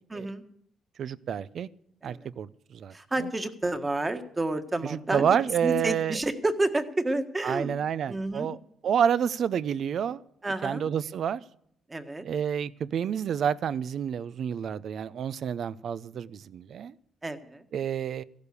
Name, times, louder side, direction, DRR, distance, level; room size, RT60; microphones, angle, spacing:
voice 1, 0.1-0.4 2.0-2.3 2.9-5.4 5.6-8.5 10.4-10.8 11.9-12.2 17.2-17.6, right 2 dB, 20° right, 8 dB, 1.5 m, -30 dB
voice 2, 1.0-1.7 2.0-2.9 4.8-6.2 7.4-8.6 8.8-10.2 10.6-11.4 12.2-16.9 17.7-18.2, right 8 dB, 60° right, 18 dB, 0.6 m, -29 dB
15.5 x 11.5 x 6.9 m, 0.69 s
cardioid pair, 90°, 0 cm